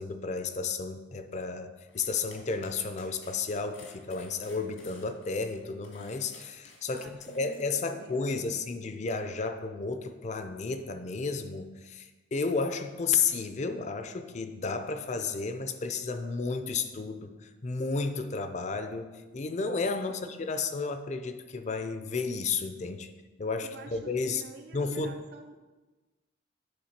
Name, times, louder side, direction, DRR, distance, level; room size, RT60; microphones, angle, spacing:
voice 1, 0.0-7.1 7.3-23.1 23.4-24.4 24.7-25.1, left 4 dB, 35° left, 9 dB, 0.5 m, -32 dB
sound 1, 1.9-7.6, left 3 dB, 85° left, 1.8 m, -54 dB
voice 2, 6.9-8.8 20.1-20.6 23.6-25.6, right 4 dB, 55° right, 5 dB, 0.4 m, -49 dB
8.7 x 3.5 x 5.7 m, 1.2 s
head